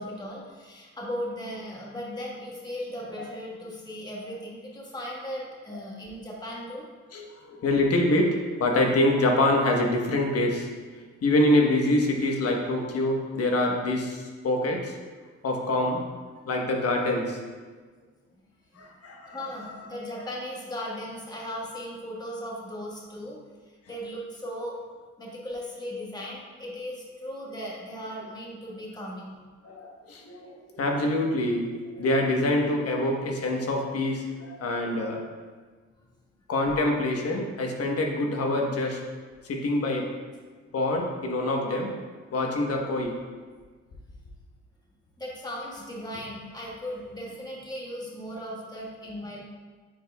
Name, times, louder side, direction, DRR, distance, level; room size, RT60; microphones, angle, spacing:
voice 1, 0.0-6.8 18.4-18.5 18.7-18.8 19.2-23.4 23.7-24.8 25.2-29.4 45.2-49.4, equal, 15° left, -4 dB, 1.4 m, -37 dB
voice 2, 7.1-10.7 11.2-14.9 15.4-16.0 16.5-17.4 18.8-19.4 29.6-35.3 36.5-39.0 39.4-40.1 40.7-41.9 42.3-43.1, left 1 dB, 50° left, 1 dB, 1.2 m, -25 dB
8.7 x 4.7 x 2.3 m, 1.4 s
cardioid pair, 90°, 30 cm